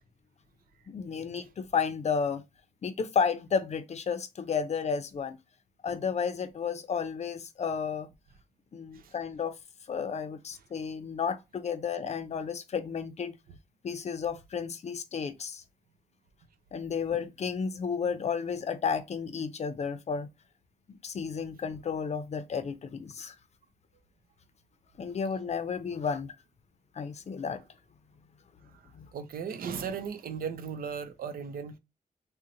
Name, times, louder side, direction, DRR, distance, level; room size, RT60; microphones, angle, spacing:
voice 1, 0.9-2.4 2.8-5.4 5.8-8.1 8.7-9.5 9.9-13.4 13.8-15.6 16.7-20.3 20.9-23.3 25.0-26.3 27.0-27.6 28.9-29.1, left 6 dB, 50° left, 0.5 m, -32 dB
voice 2, 29.1-31.8, right 6 dB, 85° right, 0.5 m, -36 dB
3.8 x 2.1 x 2.7 m
wide cardioid pair, 100°, 15 cm